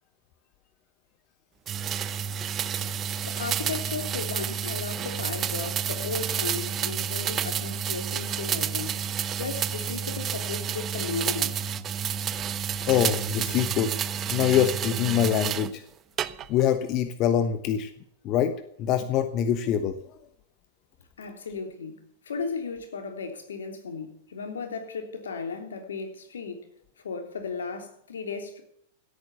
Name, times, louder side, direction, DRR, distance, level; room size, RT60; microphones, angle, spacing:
sound 1, 1.7-15.7 16.2-16.7, right 8 dB, 30° right, 0.9 m, -30 dB
voice 1, 3.2-9.0 9.4-11.6 21.2-26.7 27.0-28.6, left 5 dB, 75° left, 3.3 m, -35 dB
voice 2, 12.9-14.0 14.3-15.8 16.5-17.9 18.2-20.0, left 9 dB, 40° left, 1.2 m, -24 dB
17.0 x 9.1 x 7.0 m
hypercardioid pair, 100°, 0 cm